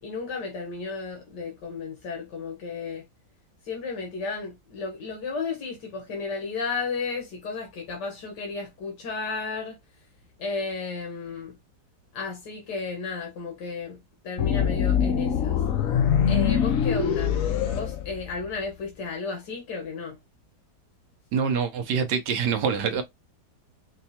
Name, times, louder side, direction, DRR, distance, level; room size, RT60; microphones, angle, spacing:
voice 1, 0.0-3.0 3.6-9.8 10.4-11.5 12.1-14.0 14.2-15.6 16.3-17.4 17.7-20.2, left 4 dB, 85° left, 1.7 m, -33 dB
sound 1, 14.4-18.6, left 8 dB, 60° left, 1.0 m, -24 dB
voice 2, 21.3-23.0, right 6 dB, 85° right, 1.4 m, -25 dB
5.3 x 2.3 x 2.8 m
omnidirectional pair, 1.8 m